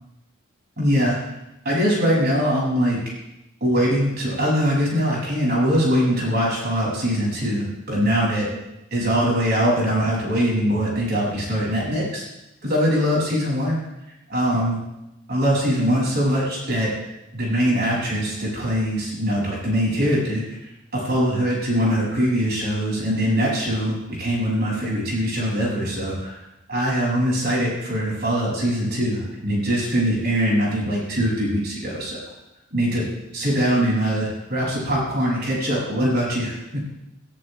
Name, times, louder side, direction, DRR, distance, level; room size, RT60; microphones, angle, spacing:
voice 1, 0.8-1.2 1.6-3.0 3.6-8.5 8.9-12.2 12.6-13.8 14.3-14.8 15.3-16.9 17.3-20.4 20.9-26.3 26.7-32.2 32.7-33.1 33.3-36.9, equal, 50° right, -5 dB, 7.4 m, -22 dB
22.0 x 15.0 x 3.5 m, 0.91 s
head